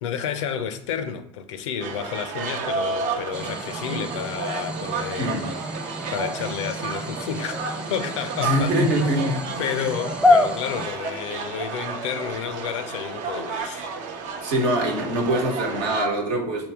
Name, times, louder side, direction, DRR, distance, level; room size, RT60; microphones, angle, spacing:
voice 1, 0.0-5.3 6.1-8.7 9.0-9.2 9.6-13.9, left 8 dB, 90° left, 0.5 m, -31 dB
sound 1, 1.8-16.0, right 5 dB, 65° right, 0.6 m, -32 dB
sound 2, 3.3-10.9, left 2 dB, 5° right, 0.6 m, -27 dB
voice 2, 8.4-9.6 14.4-16.7, equal, 80° right, 1.1 m, -24 dB
5.2 x 2.8 x 3.4 m
hypercardioid pair, 75°, 15 cm